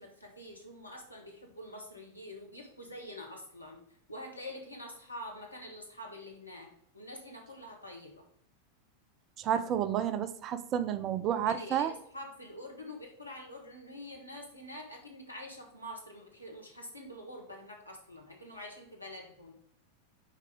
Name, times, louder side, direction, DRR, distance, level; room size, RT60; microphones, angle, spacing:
voice 1, 0.0-3.8 4.1-8.2 11.4-19.6, left 1 dB, 85° left, 1 dB, 1.3 m, -46 dB
voice 2, 9.4-11.9, right 9 dB, 35° right, 11 dB, 0.5 m, -30 dB
5.5 x 4.8 x 3.7 m, 0.66 s
figure-of-eight pair, 90°, 0 cm